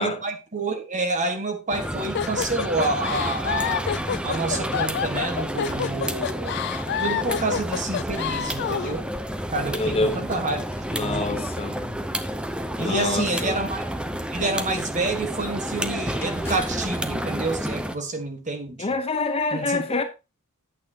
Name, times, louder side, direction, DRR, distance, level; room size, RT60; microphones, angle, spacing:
voice 1, 0.0-3.9 4.2-6.5 7.0-9.1 9.5-10.6 11.0-11.5 12.8-13.8 14.3-18.9 19.5-19.8, right 3 dB, 35° right, 1.5 m, -28 dB
sound 1, 1.7-18.0, equal, 5° right, 0.6 m, -30 dB
sound 2, 2.1-9.0, left 9 dB, 50° left, 0.3 m, -28 dB
sound 3, 9.4-12.0 15.4-18.5, left 1 dB, 10° left, 2.4 m, -45 dB
voice 2, 9.7-10.2 10.9-12.0 12.8-13.6 18.8-20.0, left 3 dB, 25° left, 0.8 m, -26 dB
8.8 x 8.4 x 2.8 m
head